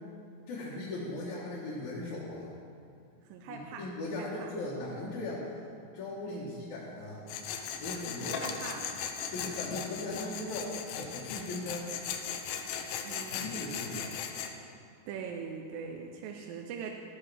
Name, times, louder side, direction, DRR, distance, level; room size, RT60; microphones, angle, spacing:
voice 1, 0.5-2.6 3.5-5.5 5.9-7.3 7.8-8.4 9.3-11.9 13.1-14.1, left 2 dB, 65° left, -7 dB, 2.3 m, -38 dB
voice 2, 3.2-4.5 6.2-6.6 7.8-9.0 10.2-10.3 13.0-13.5 15.1-16.9, right 6 dB, 80° right, 2 dB, 2.4 m, -42 dB
Tools, 7.3-14.5, left 7 dB, 90° left, 2.5 m, -38 dB
12.5 x 9.7 x 3.4 m, 2.4 s
omnidirectional pair, 4.1 m